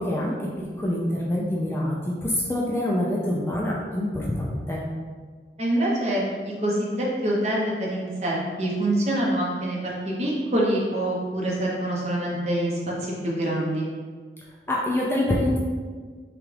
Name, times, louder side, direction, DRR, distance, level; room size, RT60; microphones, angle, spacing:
voice 1, 0.0-4.8 14.7-15.6, left 1 dB, 15° left, -4 dB, 0.4 m, -26 dB
voice 2, 5.6-13.9, right 1 dB, 40° right, -4 dB, 0.9 m, -25 dB
5.9 x 2.4 x 3.3 m, 1.5 s
head